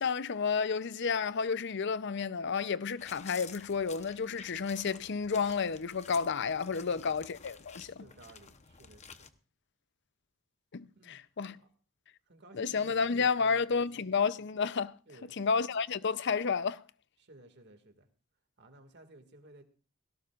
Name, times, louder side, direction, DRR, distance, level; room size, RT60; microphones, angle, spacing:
voice 1, 0.0-8.1 10.7-11.6 12.5-14.9 15.4-16.8, left 5 dB, 55° left, 0.6 m, -31 dB
sound 1, 3.0-9.3, left 6 dB, 30° left, 0.9 m, -51 dB
voice 2, 8.0-9.3 11.0-11.2 11.6-11.7 12.3-14.1 15.1-15.3 17.2-18.1 18.6-19.6, right 2 dB, 55° right, 2.0 m, -56 dB
17.5 x 17.0 x 2.4 m
head